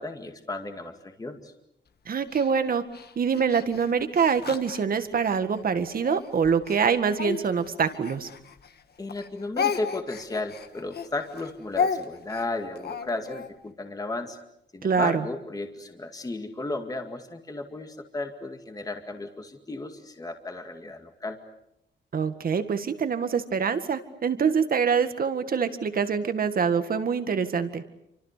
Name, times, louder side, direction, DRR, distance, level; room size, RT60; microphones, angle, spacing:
voice 1, 0.0-1.5 9.0-14.4 14.7-21.4, left 2 dB, 20° left, 5 dB, 2.1 m, -34 dB
voice 2, 2.1-2.8 3.2-8.3 14.8-15.3 22.1-27.8, right 6 dB, 45° right, 9 dB, 1.9 m, -25 dB
Speech, 2.3-5.4 6.0-8.8 9.1-13.5, left 6 dB, 55° left, 1.6 m, -33 dB
29.0 x 25.5 x 6.7 m, 0.80 s
wide cardioid pair, 175°, 20 cm